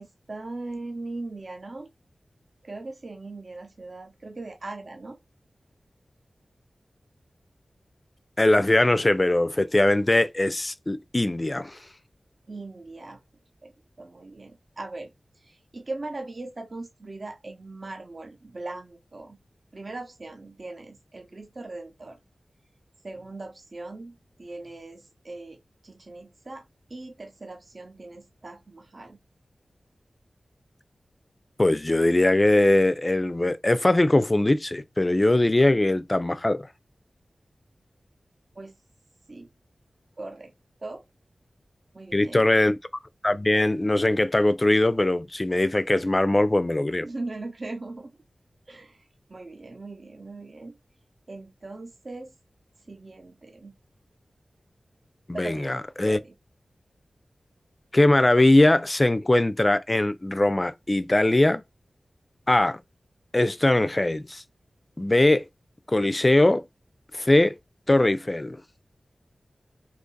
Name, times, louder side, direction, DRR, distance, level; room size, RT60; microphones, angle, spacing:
voice 1, 0.0-1.9 2.6-5.2 12.5-13.2 13.6-13.7 14.0-19.4 19.7-22.2 23.0-29.2 38.5-38.7 39.3-39.5 40.2-40.5 40.8-41.0 41.9-42.4 47.0-48.2 48.7-50.8 51.3-52.3 52.9-53.7 55.3-55.7 56.0-56.3, right 2 dB, 50° right, 0.7 m, -39 dB
voice 2, 8.4-11.8 31.6-36.7 42.1-42.8 43.2-47.1 55.3-56.2 57.9-61.6 62.5-62.8 63.3-64.4 65.0-65.5 65.9-66.6 67.1-67.6 67.9-68.6, left 1 dB, 30° left, 0.4 m, -21 dB
2.8 x 2.6 x 3.8 m
wide cardioid pair, 65°, 0 cm